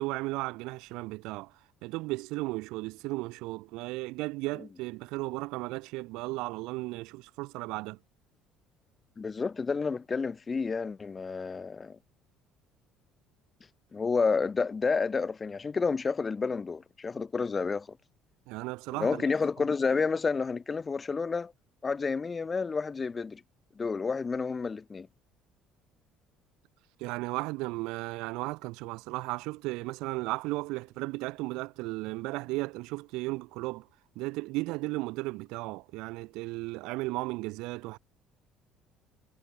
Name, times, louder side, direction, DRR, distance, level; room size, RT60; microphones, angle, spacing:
voice 1, 0.0-1.5 1.8-8.0 18.5-19.2 27.0-33.9 34.2-38.0, right 22 dB, 85° right, 0.4 m, -35 dB
voice 2, 9.2-12.0 13.9-18.0 19.0-21.5 21.8-23.4 23.8-25.1, left 4 dB, 20° left, 0.6 m, -30 dB
cardioid pair, 140°, 0 cm